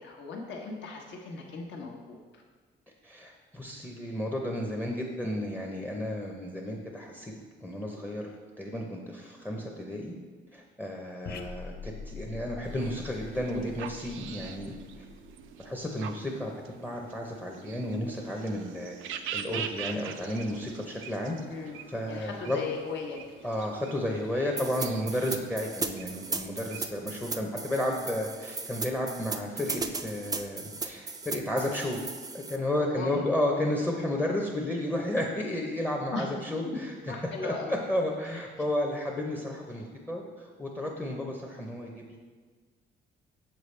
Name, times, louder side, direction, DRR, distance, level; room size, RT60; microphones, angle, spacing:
voice 1, 0.0-2.4 21.5-21.8 22.1-23.2 32.7-33.2 36.1-36.3 36.7-36.8 37.1-37.7 38.2-38.5, left 4 dB, 65° left, 0 dB, 1.1 m, -38 dB
voice 2, 3.0-7.3 7.6-8.2 8.6-10.1 10.5-15.1 15.6-21.4 21.9-22.6 23.4-32.0 32.3-36.9 37.4-42.2, left 1 dB, 10° left, 0 dB, 0.7 m, -32 dB
sound 1, 11.2-15.9, left 5 dB, 50° left, 0.6 m, -44 dB
sound 2, 12.6-27.1, right 8 dB, 80° right, 0.4 m, -44 dB
sound 3, 24.6-32.6, right 4 dB, 20° right, 0.4 m, -36 dB
6.7 x 4.6 x 3.2 m, 1.5 s
cardioid pair, 90°, 20 cm